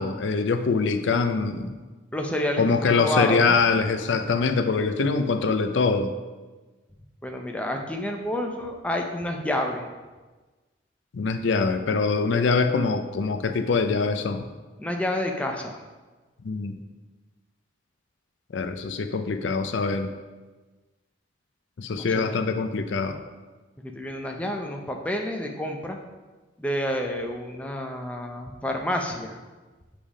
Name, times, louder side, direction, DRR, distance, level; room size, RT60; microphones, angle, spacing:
voice 1, 0.0-1.8 2.6-6.1 11.1-14.5 16.4-16.8 18.5-20.1 21.8-23.2, left 4 dB, 80° left, 8 dB, 0.4 m, -24 dB
voice 2, 2.1-3.6 7.2-9.9 14.8-15.8 21.9-22.3 23.9-26.0 26.6-29.4, left 1 dB, 5° left, 2 dB, 0.5 m, -29 dB
7.5 x 3.4 x 4.8 m, 1.3 s
head